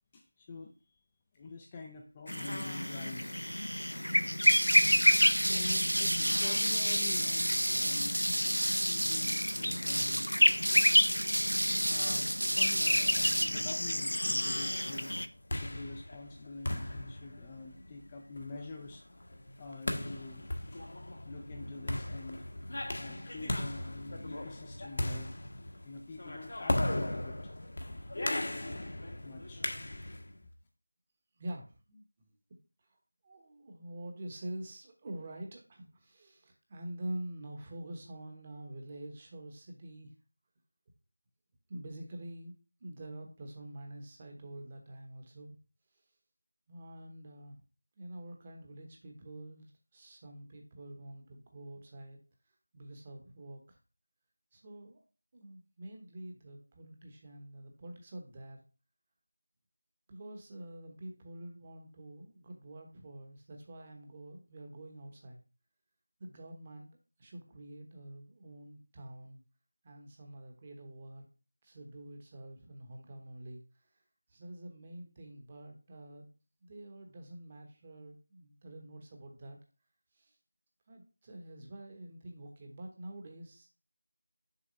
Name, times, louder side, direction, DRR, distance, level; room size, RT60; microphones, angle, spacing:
voice 1, 0.1-1.0 1.3-3.4 5.5-8.2 8.9-11.1 11.9-15.2 15.5-19.1 19.6-20.5 20.7-20.8 21.2-22.4 23.0-25.3 25.8-27.5 29.2-29.7 30.0-30.2, left 3 dB, 15° left, 2 dB, 0.5 m, -46 dB
sound 1, 2.3-15.3, left 1 dB, 85° left, 0.6 m, -30 dB
sound 2, 4.4-13.5, right 1 dB, 85° right, 0.8 m, -31 dB
sound 3, 15.2-30.3, left 1 dB, 50° left, 1.1 m, -37 dB
voice 2, 31.4-32.3 32.8-33.0 33.2-40.1 41.7-42.5 42.8-45.6 45.9-46.0 46.7-47.5 48.0-52.2 52.7-53.8 54.5-55.0 55.3-58.6 60.1-65.4 66.2-66.9 67.2-69.4 69.8-71.3 71.6-73.9 74.3-76.3 76.6-79.6 80.1-80.4 80.9-83.7, right 1 dB, 20° right, 3 dB, 1.1 m, -46 dB
6.7 x 3.4 x 5.3 m, 0.35 s
figure-of-eight pair, 170°, 0 cm